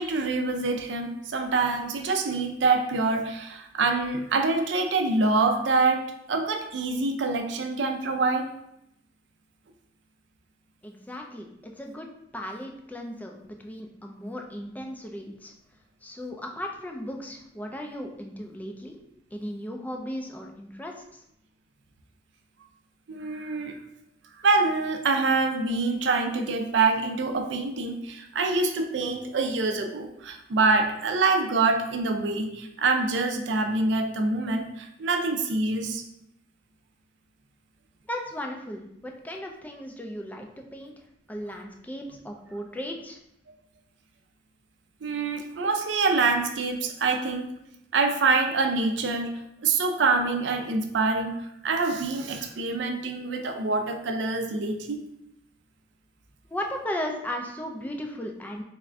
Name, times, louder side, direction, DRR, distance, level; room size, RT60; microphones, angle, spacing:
voice 1, 0.0-6.0 6.3-8.5 23.1-23.8 24.4-36.0 45.0-47.5 47.9-51.4 51.6-55.0, right 3 dB, 75° right, 4 dB, 0.5 m, -25 dB
voice 2, 10.8-12.1 12.3-15.5 16.0-19.0 19.3-21.2 38.1-41.0 41.3-43.2 56.5-58.6, equal, 10° left, 2 dB, 0.3 m, -36 dB
3.5 x 2.5 x 3.2 m, 0.78 s
head